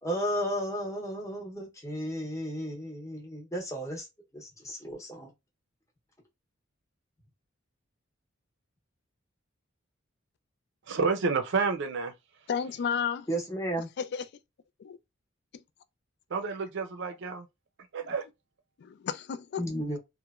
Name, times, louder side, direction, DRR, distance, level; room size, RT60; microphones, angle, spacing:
voice 1, 0.0-4.1 4.3-5.3 13.3-13.9 19.6-20.0, equal, 15° left, 0.8 m, -33 dB
voice 2, 10.9-12.1 16.3-17.5 17.9-18.2, right 4 dB, 60° right, 0.5 m, -29 dB
voice 3, 12.5-13.3 14.0-14.3 14.8-15.0 18.8-19.6, left 7 dB, 55° left, 0.3 m, -32 dB
2.9 x 2.1 x 2.3 m
head